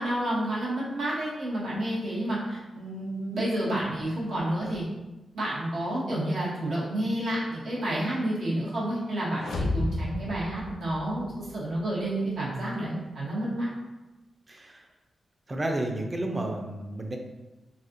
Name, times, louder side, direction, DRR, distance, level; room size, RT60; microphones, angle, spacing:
voice 1, 0.0-4.8 5.3-13.7, right 1 dB, 80° right, -7 dB, 1.3 m, -30 dB
sound 1, 9.4-11.5, left 2 dB, 70° left, 0.4 m, -32 dB
voice 2, 14.5-14.8 15.5-17.2, right 1 dB, 25° right, 3 dB, 0.5 m, -31 dB
4.1 x 2.4 x 2.6 m, 1.1 s
wide cardioid pair, 100°, 0 cm